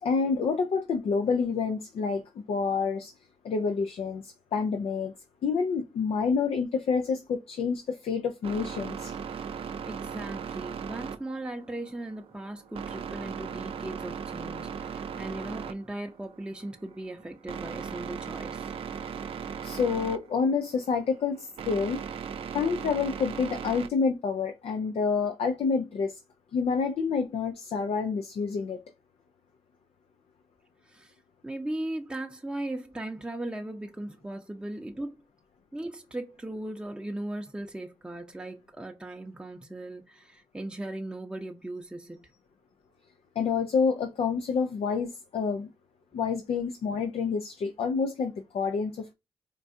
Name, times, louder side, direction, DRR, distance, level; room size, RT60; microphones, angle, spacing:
voice 1, 0.0-3.1 3.4-5.1 5.4-9.1 19.6-22.0 22.5-26.2 26.5-28.8 43.4-45.7 46.1-49.1, left 5 dB, 75° left, 0.5 m, -28 dB
sound 1, 8.4-23.9, right 7 dB, 70° right, 0.4 m, -38 dB
voice 2, 9.8-18.7 30.8-31.1 31.4-35.2 35.7-42.3, right 1 dB, 10° right, 0.7 m, -38 dB
4.5 x 2.4 x 2.6 m
supercardioid pair, 45°, 10 cm